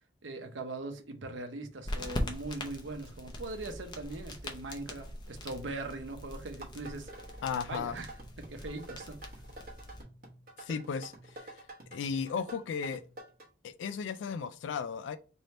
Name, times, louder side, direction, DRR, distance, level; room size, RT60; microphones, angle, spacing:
voice 1, 0.2-7.1 7.7-8.1 8.4-9.2, right 2 dB, 85° right, 0.7 m, -40 dB
sound 1, 1.8-10.0, left 1 dB, 25° left, 0.6 m, -41 dB
sound 2, 6.6-13.5, right 1 dB, 50° right, 0.9 m, -49 dB
voice 2, 7.4-8.0 10.6-11.6 11.9-13.0 13.6-15.2, left 6 dB, 80° left, 0.3 m, -35 dB
3.2 x 2.6 x 4.2 m
head